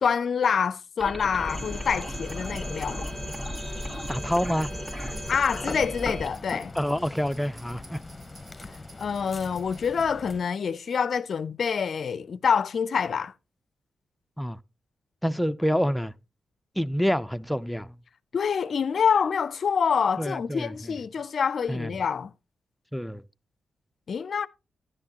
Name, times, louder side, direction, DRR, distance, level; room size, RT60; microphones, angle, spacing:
voice 1, 0.0-3.1 5.3-6.7 9.0-13.3 18.3-22.3 24.1-24.5, left 6 dB, 65° left, 0.4 m, -26 dB
sound 1, 1.0-6.3, equal, 20° right, 1.8 m, -35 dB
sound 2, 1.3-10.4, left 3 dB, 30° left, 0.8 m, -41 dB
sound 3, 2.1-10.0, right 2 dB, 65° right, 2.3 m, -54 dB
voice 2, 4.1-4.7 6.7-8.0 14.4-14.6 15.2-16.1 16.8-17.9 20.2-21.0 21.7-21.9 22.9-23.2, equal, 5° left, 0.5 m, -27 dB
10.5 x 9.7 x 2.9 m
cardioid pair, 55°, 0 cm